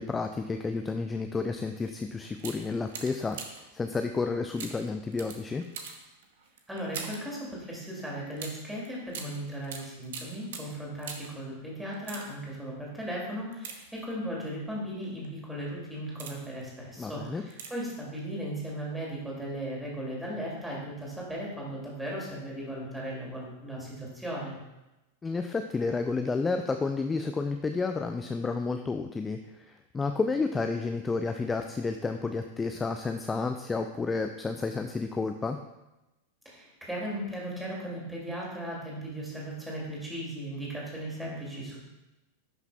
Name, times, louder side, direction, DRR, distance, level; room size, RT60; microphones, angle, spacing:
voice 1, 0.0-3.4 3.7-5.6 17.0-17.4 25.2-35.6, left 4 dB, 15° left, 6 dB, 0.4 m, -31 dB
sound 1, 1.8-2.0 2.4-3.8 4.6-7.3 8.4-11.4 11.9-12.6 13.5-14.4 15.0-15.3 15.8-16.6 17.5-18.0 18.2-18.3, right 6 dB, 55° right, 0.9 m, -43 dB
voice 2, 6.7-24.5 36.4-41.8, right 1 dB, 5° right, -4 dB, 2.6 m, -37 dB
11.0 x 5.8 x 2.3 m, 1.0 s
figure-of-eight pair, 90°, 0 cm